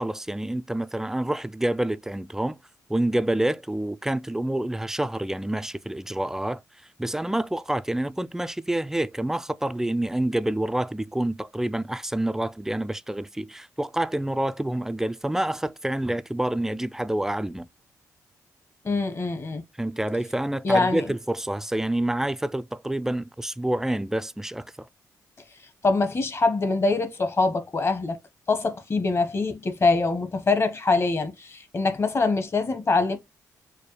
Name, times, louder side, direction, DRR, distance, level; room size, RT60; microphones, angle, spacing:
voice 1, 0.0-2.6 2.9-6.6 7.0-17.7 19.8-24.9, right 1 dB, 5° right, 0.3 m, -27 dB
voice 2, 18.8-19.6 20.6-21.0 25.8-28.2 28.5-33.2, left 3 dB, 40° left, 1.1 m, -24 dB
4.5 x 2.2 x 3.1 m
cardioid pair, 70°, 7 cm